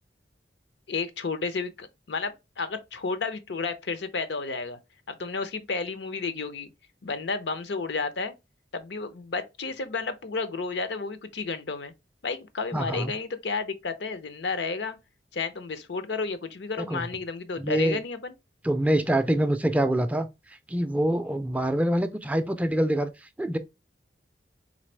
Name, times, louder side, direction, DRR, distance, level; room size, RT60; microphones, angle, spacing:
voice 1, 0.9-4.8 5.1-6.7 7.0-8.3 8.7-11.9 12.2-15.0 15.3-18.3, left 4 dB, 75° left, 0.7 m, -32 dB
voice 2, 12.7-13.1 16.9-17.1 17.6-18.0 18.6-20.3 20.7-23.1 23.4-23.6, right 1 dB, 10° right, 0.3 m, -25 dB
4.0 x 3.3 x 3.2 m
head